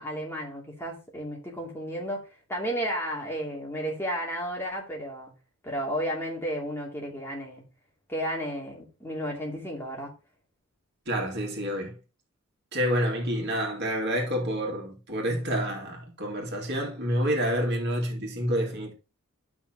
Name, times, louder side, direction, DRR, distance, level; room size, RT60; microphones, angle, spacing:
voice 1, 0.0-5.3 5.6-7.6 8.1-10.1, equal, 10° left, 2.7 m, -33 dB
voice 2, 11.1-12.0 12.7-18.9, equal, 50° right, 2.3 m, -28 dB
11.0 x 6.1 x 2.9 m
head